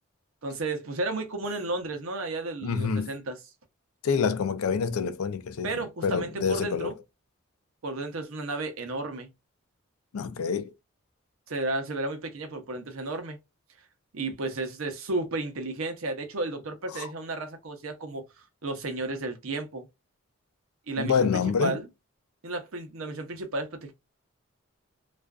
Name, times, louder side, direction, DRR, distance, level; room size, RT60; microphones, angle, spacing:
voice 1, 0.4-3.4 5.6-6.9 7.8-9.3 11.5-13.4 14.1-18.2 18.6-19.9 20.9-21.3 21.6-21.9 22.4-23.9, right 2 dB, 75° right, 0.7 m, -33 dB
voice 2, 2.6-3.1 4.0-6.9 10.1-10.7 16.9-17.1 21.0-21.8, left 6 dB, 85° left, 0.4 m, -27 dB
2.4 x 2.3 x 2.2 m
head